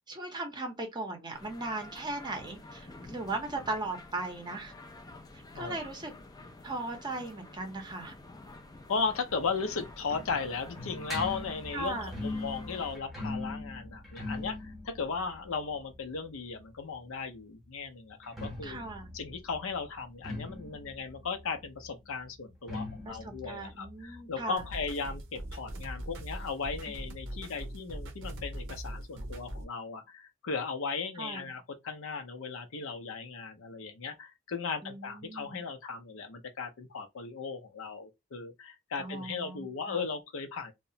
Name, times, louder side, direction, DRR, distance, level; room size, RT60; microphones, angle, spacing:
voice 1, 0.1-4.7 5.5-6.1 6.6-8.1 11.7-12.1 18.6-19.1 23.1-24.6 31.2-31.5 34.8-35.6 39.0-40.0, right 2 dB, 20° right, 0.7 m, -38 dB
sound 1, 1.3-13.0, left 2 dB, 20° left, 0.4 m, -49 dB
voice 2, 8.9-18.8 19.1-40.7, left 5 dB, 65° left, 0.5 m, -36 dB
sound 2, 9.3-17.0 18.1-25.5 25.7-25.8 26.1-26.2 26.9-27.0, left 2 dB, ahead, 0.9 m, -41 dB
sound 3, 24.6-29.6, right 1 dB, 60° right, 0.6 m, -41 dB
2.9 x 2.1 x 2.6 m
head